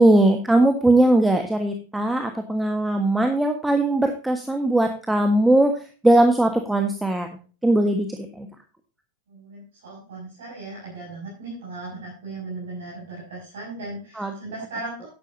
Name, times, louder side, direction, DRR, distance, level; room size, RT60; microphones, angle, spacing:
voice 1, 0.0-5.7 6.0-7.3 7.6-8.5 14.2-14.3, right 1 dB, 5° right, 5 dB, 1.4 m, -19 dB
voice 2, 9.3-15.1, right 2 dB, 60° right, -5 dB, 6.1 m, -37 dB
13.0 x 10.5 x 2.7 m, 0.36 s
figure-of-eight pair, 90°, 0 cm